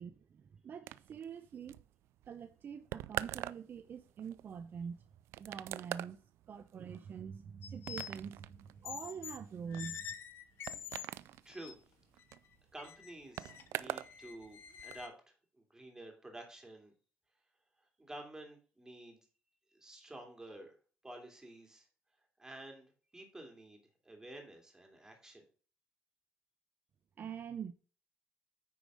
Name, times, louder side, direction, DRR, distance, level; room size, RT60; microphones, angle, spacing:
voice 1, 0.0-1.8 2.3-5.0 5.4-6.2 6.5-10.1 27.2-27.7, right 7 dB, 50° right, 0.6 m, -45 dB
sound 1, 0.9-14.2 14.4-15.0, right 14 dB, 80° right, 0.4 m, -45 dB
sound 2, 7.6-8.2 8.8-9.4 9.7-11.1 11.5-11.7 12.2-12.3 12.8-15.1, left 9 dB, 65° left, 1.1 m, -47 dB
voice 2, 11.4-11.8 12.7-16.9 17.8-19.2 19.7-20.8 21.0-21.9 22.4-25.5, right 1 dB, 15° right, 3.0 m, -51 dB
9.4 x 4.9 x 5.0 m
cardioid pair, 100°, 4 cm